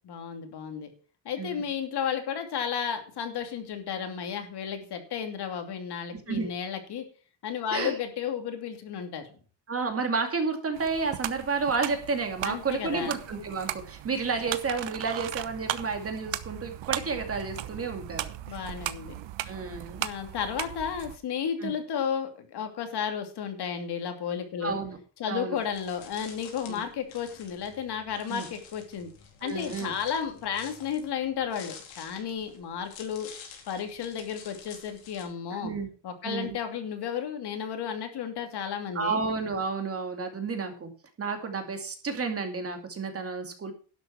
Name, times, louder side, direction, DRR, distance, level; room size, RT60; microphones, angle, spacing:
voice 1, 0.0-0.9 1.2-7.1 7.4-9.3 12.4-13.2 18.5-19.1 20.0-24.8 25.2-29.1 29.4-33.3 33.7-35.7 36.0-39.2, left 7 dB, 55° left, 6 dB, 2.7 m, -33 dB
voice 2, 9.7-18.7 19.4-20.1 21.6-21.7 24.6-25.0 25.3-25.6 26.7-26.8 28.3-28.5 29.4-29.9 35.5-35.9 36.2-36.6 38.9-40.9 41.2-43.7, right 4 dB, 30° right, 5 dB, 2.5 m, -31 dB
sound 1, 10.7-21.2, right 13 dB, 70° right, 1.1 m, -37 dB
sound 2, 16.5-20.4, right 16 dB, 90° right, 4.7 m, -54 dB
sound 3, 25.5-35.2, left 7 dB, 80° left, 4.3 m, -49 dB
12.0 x 7.9 x 5.8 m, 0.40 s
cardioid pair, 150°, 46 cm